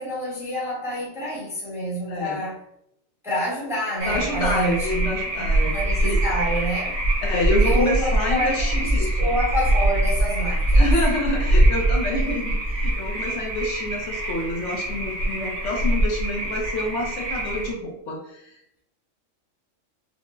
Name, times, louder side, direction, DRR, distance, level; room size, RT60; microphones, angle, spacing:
voice 1, 0.0-2.6 3.2-5.1 5.4-6.9 7.6-10.9, equal, 5° right, -6 dB, 0.8 m, -28 dB
voice 2, 2.1-2.5 4.0-5.8 6.0-6.2 7.2-9.2 10.7-18.5, left 1 dB, 70° left, 0 dB, 0.9 m, -28 dB
sound 1, 4.0-17.7, right 1 dB, 75° right, 1.4 m, -23 dB
5.2 x 2.0 x 2.4 m, 0.79 s
omnidirectional pair, 1.3 m